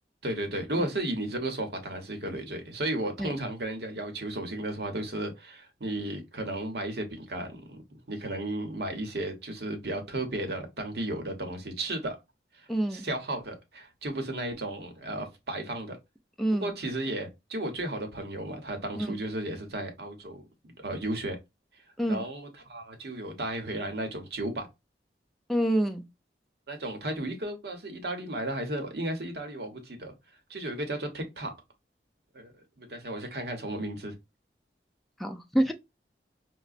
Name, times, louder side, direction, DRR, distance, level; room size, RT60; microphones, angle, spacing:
voice 1, 0.2-7.8 8.1-12.2 12.9-16.0 16.6-21.4 22.1-24.7 26.7-30.1 30.5-31.5 32.3-34.1, right 1 dB, 70° right, 0.9 m, -34 dB
voice 2, 12.7-13.1 16.4-16.7 18.9-19.2 22.0-22.2 25.5-26.1 35.2-35.7, right 1 dB, ahead, 0.4 m, -27 dB
4.8 x 2.1 x 2.4 m
head